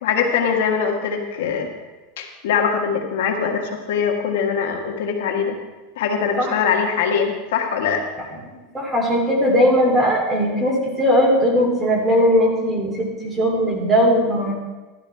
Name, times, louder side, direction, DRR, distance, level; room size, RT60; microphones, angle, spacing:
voice 1, 0.0-1.7 2.2-5.6 6.0-8.0, left 6 dB, 85° left, 2 dB, 1.7 m, -22 dB
voice 2, 8.7-14.5, equal, 10° right, -1 dB, 2.7 m, -18 dB
13.0 x 12.0 x 3.4 m, 1.2 s
supercardioid pair, 150°, 0 cm